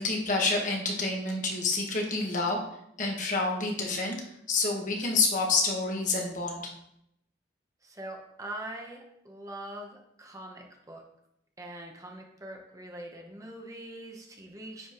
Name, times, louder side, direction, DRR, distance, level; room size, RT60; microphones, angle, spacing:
voice 1, 0.0-2.6 3.0-4.2 4.5-6.7, left 3 dB, 45° left, 1 dB, 1.4 m, -28 dB
voice 2, 7.8-11.0 11.6-14.9, right 1 dB, 20° right, 1 dB, 0.9 m, -43 dB
9.4 x 5.3 x 3.0 m, 0.76 s
head